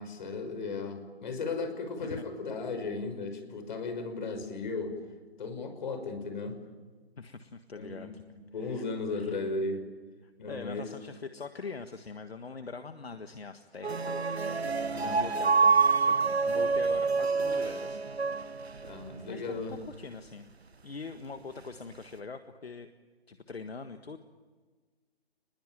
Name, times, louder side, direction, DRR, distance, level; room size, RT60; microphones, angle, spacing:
voice 1, 0.0-4.9 5.4-6.6 7.8-9.8 10.4-10.9 14.9-15.3 18.8-19.8, left 3 dB, 50° left, 8 dB, 5.8 m, -36 dB
voice 2, 7.2-8.2 8.6-8.8 9.1-9.4 10.2-16.1 16.4-18.0 19.3-20.5 20.8-22.9 23.3-24.2, left 4 dB, 75° left, 8 dB, 1.6 m, -43 dB
sound 1, 13.8-19.1, right 4 dB, 85° right, 1.0 m, -27 dB
29.0 x 21.0 x 9.0 m, 1.4 s
figure-of-eight pair, 135°, 31 cm